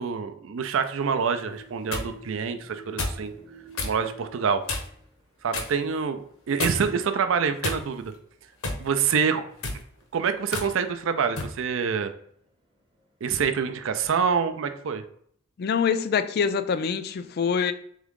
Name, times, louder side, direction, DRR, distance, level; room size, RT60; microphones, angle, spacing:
voice 1, 0.0-3.3 3.8-4.7 5.4-8.1 8.8-9.4 10.1-12.1 13.2-15.0, right 6 dB, 65° right, 0.4 m, -26 dB
sound 1, 1.2-6.7 7.0-7.1 7.5-7.7 9.0-9.2 9.4-9.7 10.6-11.0 11.5-13.8, right 3 dB, 25° right, 0.8 m, -49 dB
sound 2, 1.5-2.1 3.0-3.2 3.7-4.0 4.7-5.0 5.5-5.8 6.6-7.0 7.6-8.1 8.6-8.9 9.5-9.8 10.5-10.7 11.4-11.6, left 3 dB, 80° left, 0.9 m, -31 dB
voice 2, 15.6-17.7, left 6 dB, 50° left, 0.3 m, -25 dB
3.6 x 3.6 x 3.6 m
head